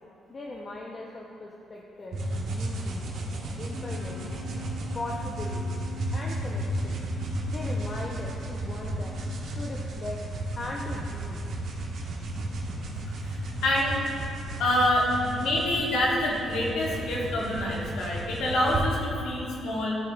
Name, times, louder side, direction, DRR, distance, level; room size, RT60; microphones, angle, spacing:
voice 1, 0.3-3.0 3.6-4.3 4.9-5.9 6.1-7.0 7.5-9.2 9.6-10.2 10.6-11.5 13.0-13.1, left 2 dB, 35° left, -2 dB, 0.6 m, -39 dB
sound 1, 2.1-18.8, right 1 dB, 70° right, 1.3 m, -33 dB
Wind instrument woodwind instrument, 3.7-9.4, left 1 dB, 30° right, 1.3 m, -46 dB
voice 2, 13.2-13.9 14.6-20.0, left 1 dB, 80° left, -3 dB, 1.4 m, -26 dB
12.5 x 5.3 x 2.3 m, 2.6 s
cardioid pair, 90°, 0 cm